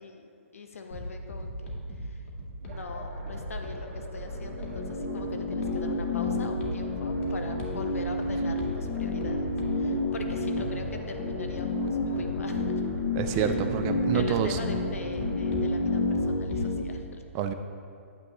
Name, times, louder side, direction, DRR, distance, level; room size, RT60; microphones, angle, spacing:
voice 1, 0.0-2.2 2.6-12.7 13.3-13.5 14.1-17.2, left 4 dB, 85° left, 5 dB, 1.0 m, -41 dB
sound 1, 0.9-16.8, equal, 60° left, 2.1 m, -40 dB
sound 2, 2.6-16.9, right 1 dB, 60° right, 2.0 m, -40 dB
sound 3, 4.3-16.8, left 2 dB, 45° left, 0.8 m, -30 dB
voice 2, 13.2-14.6 17.3-17.5, right 8 dB, 25° right, 8 dB, 0.4 m, -28 dB
9.4 x 9.4 x 3.1 m, 2.4 s
hypercardioid pair, 150°, 7 cm